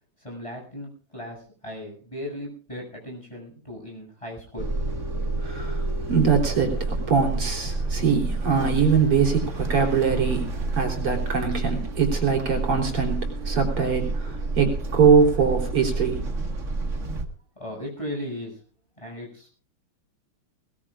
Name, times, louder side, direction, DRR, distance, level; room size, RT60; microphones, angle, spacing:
voice 1, 0.2-1.4 1.6-4.7 17.6-18.5 19.0-19.5, left 1 dB, 15° left, 0 dB, 7.5 m, -36 dB
sound 1, 4.6-17.2, right 2 dB, 35° right, 1.9 m, -29 dB
voice 2, 5.4-16.3, right 6 dB, 80° right, 1 dB, 4.7 m, -23 dB
21.5 x 20.0 x 2.5 m, 0.42 s
omnidirectional pair, 2.4 m